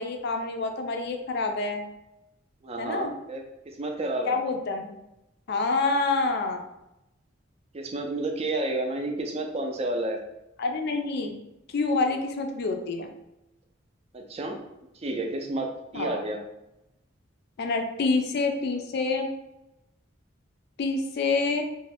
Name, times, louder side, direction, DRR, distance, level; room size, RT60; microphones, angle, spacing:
voice 1, 0.0-1.8 2.8-3.1 4.2-4.9 5.5-6.6 10.6-11.3 11.7-13.1 15.9-16.2 17.6-19.3 20.8-21.6, left 3 dB, 55° left, 5 dB, 0.4 m, -27 dB
voice 2, 2.6-3.4 3.8-4.4 7.7-10.2 14.1-14.6 15.0-16.4, right 2 dB, 30° right, 3 dB, 0.4 m, -30 dB
2.4 x 2.2 x 3.3 m, 0.89 s
head